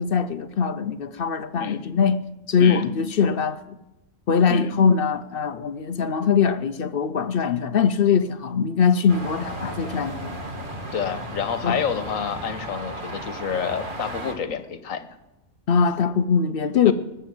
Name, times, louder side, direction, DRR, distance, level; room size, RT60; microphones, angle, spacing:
voice 1, 0.0-2.2 2.5-3.8 4.3-10.4 11.6-11.8 15.7-16.9, left 6 dB, 55° left, 0.7 m, -22 dB
sound 1, 9.1-14.3, right 1 dB, 40° right, 2.1 m, -34 dB
voice 2, 10.9-15.1 16.8-16.9, left 7 dB, 75° left, 1.4 m, -28 dB
20.5 x 6.9 x 7.7 m
omnidirectional pair, 1.4 m